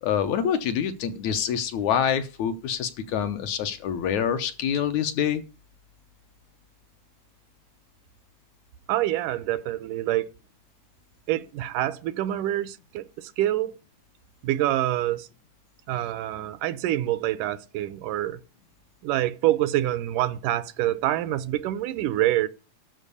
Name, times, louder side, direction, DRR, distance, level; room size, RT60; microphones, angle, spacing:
voice 1, 0.0-5.4, left 8 dB, 70° left, 2.1 m, -26 dB
voice 2, 8.9-10.3 11.3-13.7 14.4-15.3 15.9-18.4 19.0-22.5, right 14 dB, 80° right, 2.2 m, -26 dB
13.0 x 4.6 x 8.3 m
omnidirectional pair, 3.7 m